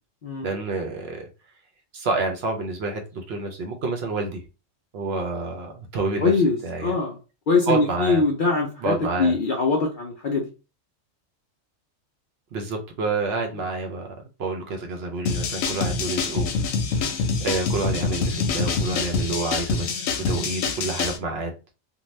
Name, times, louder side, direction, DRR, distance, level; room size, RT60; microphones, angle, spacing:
voice 1, 0.4-1.3 1.9-4.4 4.9-6.3 6.6-6.9 7.7-8.2 8.8-9.3 12.5-14.1 14.4-21.5, right 3 dB, 60° right, 2 dB, 0.8 m, -28 dB
voice 2, 6.2-7.2 7.5-10.5, left 4 dB, 60° left, 0 dB, 0.5 m, -22 dB
sound 1, 15.3-21.2, left 4 dB, 90° left, 1.0 m, -26 dB
2.6 x 2.2 x 3.1 m, 0.32 s
omnidirectional pair, 1.3 m